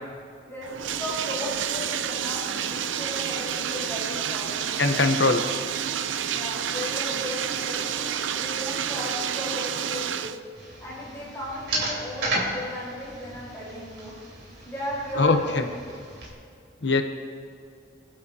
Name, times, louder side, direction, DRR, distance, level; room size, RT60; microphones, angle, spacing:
voice 1, 0.4-5.3 6.3-10.3 10.8-14.2 14.6-15.8, equal, 15° left, -8 dB, 4.1 m, -35 dB
Bathtub (filling or washing), 0.6-10.4, right 9 dB, 85° right, 0.5 m, -29 dB
voice 2, 4.8-5.4 15.2-15.6 16.8-17.0, left 3 dB, 70° left, 6 dB, 0.9 m, -21 dB
sound 1, 10.5-16.3, right 2 dB, 70° right, 3.8 m, -34 dB
24.5 x 11.5 x 2.8 m, 2.4 s
head